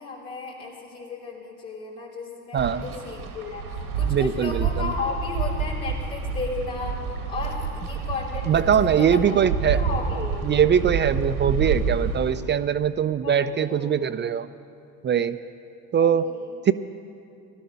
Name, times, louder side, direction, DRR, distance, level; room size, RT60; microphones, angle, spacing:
voice 1, 0.0-3.6 3.9-9.3 9.7-10.5 13.2-14.0 16.0-16.5, left 4 dB, 85° left, -5 dB, 3.4 m, -34 dB
voice 2, 2.5-2.8 4.1-4.9 8.5-9.8 10.2-14.5 15.0-15.4 15.9-16.3 16.7-16.8, right 8 dB, 25° right, 12 dB, 0.4 m, -22 dB
Wind, 2.6-12.3, right 5 dB, 90° right, 1.7 m, -28 dB
17.0 x 12.5 x 5.6 m, 2.5 s
hypercardioid pair, 65°, 42 cm